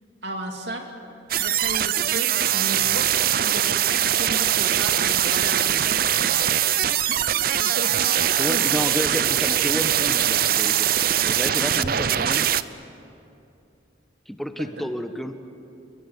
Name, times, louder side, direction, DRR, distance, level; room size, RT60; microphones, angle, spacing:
voice 1, 0.2-0.9 1.3-6.4 7.1-8.7 14.6-14.7, right 1 dB, 65° right, 3 dB, 2.5 m, -35 dB
sound 1, 1.3-12.6, right 10 dB, 50° right, 0.6 m, -22 dB
voice 2, 8.4-12.5 14.3-15.5, equal, ahead, 7 dB, 1.2 m, -31 dB
29.0 x 22.0 x 8.2 m, 2.7 s
head